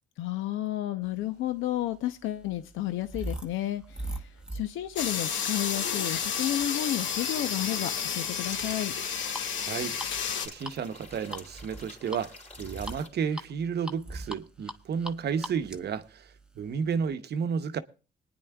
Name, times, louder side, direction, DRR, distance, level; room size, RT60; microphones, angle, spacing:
voice 1, 0.2-8.9, left 13 dB, 85° left, 0.6 m, -32 dB
sound 1, 1.5-17.1, right 1 dB, 5° right, 1.0 m, -43 dB
sound 2, 5.0-10.5, left 7 dB, 70° left, 1.0 m, -31 dB
sound 3, 6.8-13.1, left 2 dB, 35° left, 3.0 m, -48 dB
voice 2, 9.6-10.0 10.4-17.8, right 6 dB, 55° right, 0.8 m, -32 dB
25.0 x 9.7 x 2.3 m
cardioid pair, 90°, 20 cm